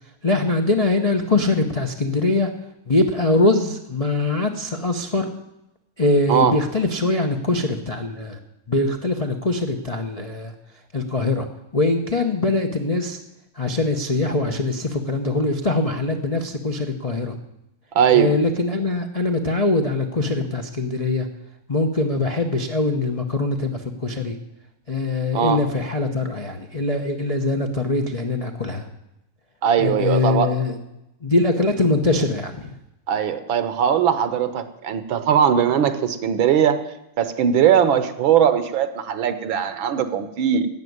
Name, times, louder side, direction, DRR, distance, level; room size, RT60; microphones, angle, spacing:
voice 1, 0.2-2.5 2.9-5.3 6.0-8.4 8.7-10.5 10.9-11.5 11.7-13.2 13.6-17.3 18.1-21.3 21.7-24.3 24.9-28.9 29.8-30.8 31.2-32.7, left 2 dB, 40° left, 3 dB, 0.5 m, -22 dB
voice 2, 18.0-18.4 25.3-25.6 29.6-30.5 33.1-36.8 37.2-40.7, right 8 dB, 70° right, 12 dB, 1.7 m, -19 dB
13.0 x 8.2 x 9.5 m, 0.90 s
omnidirectional pair, 2.4 m